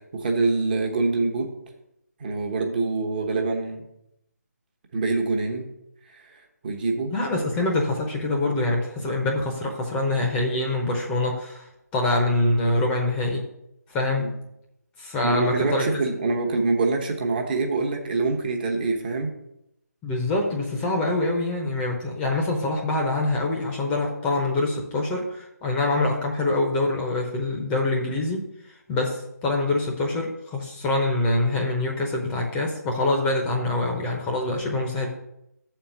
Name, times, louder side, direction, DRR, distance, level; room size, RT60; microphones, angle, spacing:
voice 1, 0.1-1.5 2.2-3.8 4.9-5.7 6.1-7.1 14.2-14.4 15.2-19.3, right 3 dB, 30° right, 2 dB, 1.1 m, -25 dB
voice 2, 7.1-13.4 13.9-14.4 15.0-15.9 20.0-28.5 28.9-35.1, left 2 dB, 10° left, 0 dB, 0.8 m, -25 dB
7.1 x 4.4 x 6.9 m, 0.81 s
figure-of-eight pair, 150°, 9 cm